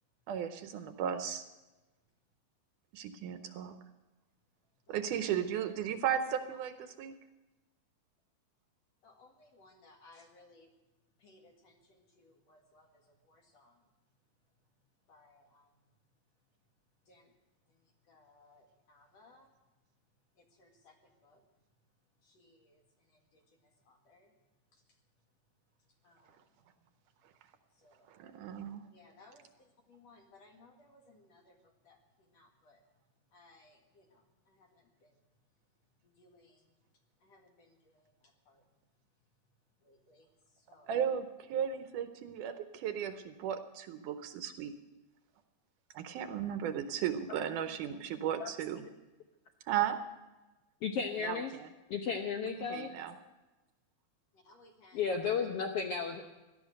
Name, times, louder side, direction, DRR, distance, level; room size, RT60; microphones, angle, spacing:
voice 1, 0.3-1.4 2.9-3.7 4.9-7.1 28.1-28.9 40.9-44.7 45.9-48.9 49.7-50.0 51.2-51.7 52.5-53.1, right 9 dB, 75° right, 9 dB, 2.1 m, -35 dB
voice 2, 9.0-10.7 11.2-13.8 15.1-15.7 17.1-17.3 17.7-19.5 20.4-21.4 22.2-24.3 26.0-26.4 27.8-28.1 28.9-32.8 33.3-35.1 36.0-36.7 37.2-38.6 39.8-40.3 40.5-41.0 54.3-55.0, left 2 dB, 50° left, 3 dB, 2.7 m, -63 dB
voice 3, 50.8-51.5 51.9-52.9 54.9-56.2, left 6 dB, 85° left, 4 dB, 1.3 m, -34 dB
17.5 x 12.0 x 6.5 m, 1.1 s
omnidirectional pair, 4.1 m